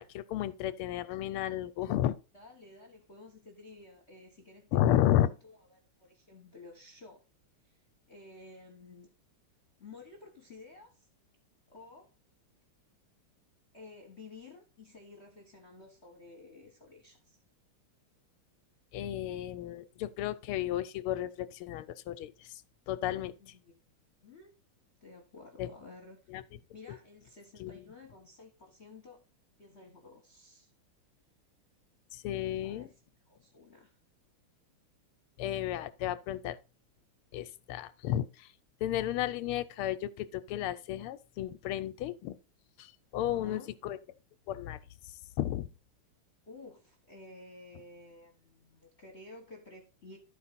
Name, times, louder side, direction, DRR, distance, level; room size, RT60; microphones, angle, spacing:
voice 1, 0.0-2.2 4.7-5.3 18.9-22.3 22.9-23.3 25.6-25.7 26.3-26.4 26.9-27.0 27.6-27.8 32.1-32.9 35.4-36.6 37.3-38.5 38.8-42.4 42.8-44.0 44.5-44.8 45.4-45.7, left 12 dB, 85° left, 1.6 m, -32 dB
voice 2, 2.3-7.2 7.6-9.1 9.8-11.1 11.7-12.1 13.7-17.4 23.4-23.7 24.2-24.5 25.0-26.3 26.7-29.2 29.6-30.7 32.6-33.0 33.2-34.0 43.1-43.7 46.5-50.2, left 3 dB, 35° left, 1.4 m, -53 dB
12.5 x 5.1 x 4.1 m
omnidirectional pair, 2.4 m